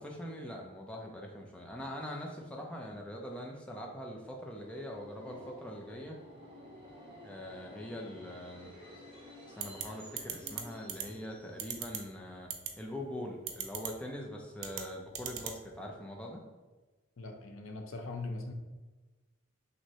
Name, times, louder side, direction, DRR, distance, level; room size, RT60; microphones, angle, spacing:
voice 1, 0.0-6.2 7.2-8.7 9.5-12.5 12.8-16.4, equal, 5° left, -1 dB, 0.4 m, -43 dB
Subway metro underground, 4.3-12.0, equal, 25° right, 1.2 m, -53 dB
sound 1, 9.6-9.8 10.2-10.6 10.9-11.0 11.6-12.0 12.5-12.7 13.5-13.9 14.6-14.8 15.2-15.6, right 9 dB, 85° right, 0.5 m, -36 dB
voice 2, 17.2-18.5, left 2 dB, 70° left, 4 dB, 0.5 m, -40 dB
6.0 x 2.1 x 2.8 m, 1.2 s
head